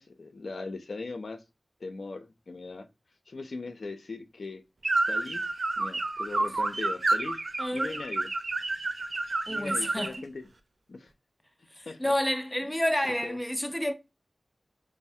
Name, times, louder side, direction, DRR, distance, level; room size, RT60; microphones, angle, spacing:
voice 1, 0.0-1.4 1.8-2.9 3.3-4.6 5.1-5.5 5.8-7.4 7.7-8.3 9.5-10.5 10.9-11.1 11.9-12.1 13.2-13.4, left 3 dB, 70° left, 0.4 m, -39 dB
sound 1, 4.8-10.2, right 2 dB, 60° right, 0.3 m, -29 dB
voice 2, 7.6-7.9 9.5-10.2 11.7-13.9, left 1 dB, 5° left, 0.4 m, -29 dB
3.1 x 2.0 x 2.6 m
wide cardioid pair, 60°, 0 cm